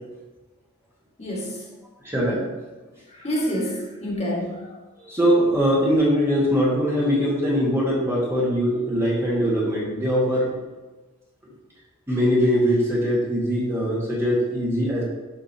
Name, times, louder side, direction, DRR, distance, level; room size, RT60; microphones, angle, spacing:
voice 1, 1.2-1.6 3.1-5.0, equal, 30° left, -4 dB, 1.8 m, -28 dB
voice 2, 2.0-2.4 5.1-10.6 12.1-15.0, equal, 10° right, -5 dB, 1.5 m, -21 dB
11.0 x 4.9 x 2.8 m, 1.2 s
head